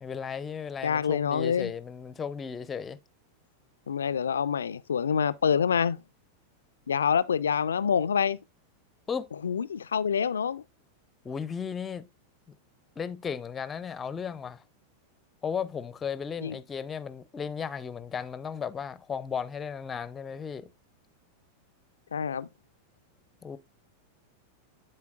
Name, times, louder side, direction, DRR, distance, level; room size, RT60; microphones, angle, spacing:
voice 1, 0.0-3.0 9.1-9.3 11.2-12.1 13.0-14.6 15.4-20.7 23.4-23.6, left 6 dB, 20° left, 0.5 m, -35 dB
voice 2, 0.8-1.7 3.9-6.0 6.9-8.4 9.4-10.6 16.4-16.5 22.1-22.5, left 7 dB, 70° left, 0.3 m, -26 dB
11.5 x 4.4 x 2.4 m
figure-of-eight pair, 90°, 0 cm